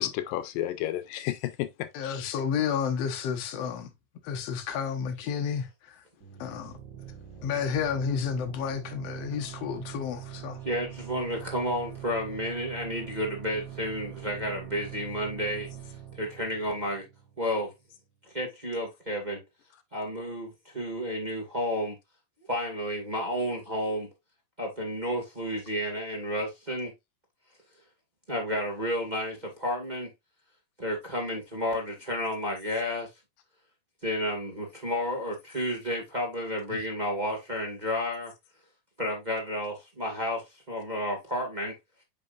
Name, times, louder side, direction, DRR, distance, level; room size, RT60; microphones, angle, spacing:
voice 1, 0.0-2.3, left 13 dB, 80° left, 2.4 m, -32 dB
voice 2, 1.9-3.9 4.2-6.0 6.4-6.8 7.4-10.6, left 7 dB, 60° left, 1.8 m, -31 dB
sound 1, 6.2-17.6, right 11 dB, 45° right, 1.6 m, -43 dB
voice 3, 10.6-15.7 16.2-17.0 17.4-17.7 18.2-19.4 19.9-22.0 22.5-24.1 24.6-26.9 28.3-30.1 30.8-33.1 34.0-38.3 39.0-41.7, equal, 20° right, 1.1 m, -31 dB
8.7 x 5.5 x 2.5 m
omnidirectional pair, 4.1 m